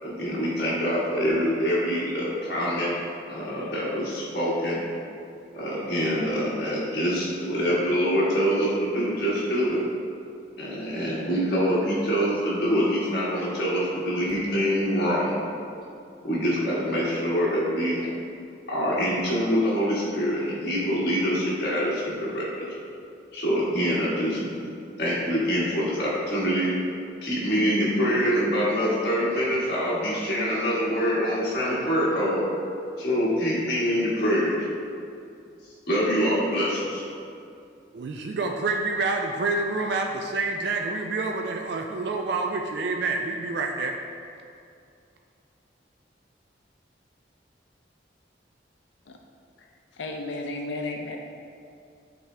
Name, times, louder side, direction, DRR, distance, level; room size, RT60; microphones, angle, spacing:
voice 1, 0.0-2.9 3.3-4.8 5.5-9.8 10.6-15.4 16.2-18.1 18.7-22.7 23.3-26.7 27.2-32.4 33.0-34.6 35.9-37.0, equal, 55° left, -8 dB, 1.4 m, -25 dB
voice 2, 37.9-44.0, right 3 dB, 70° right, 2 dB, 0.4 m, -28 dB
voice 3, 49.9-51.2, left 2 dB, 80° left, 2 dB, 0.5 m, -33 dB
8.3 x 3.5 x 3.3 m, 2.5 s
head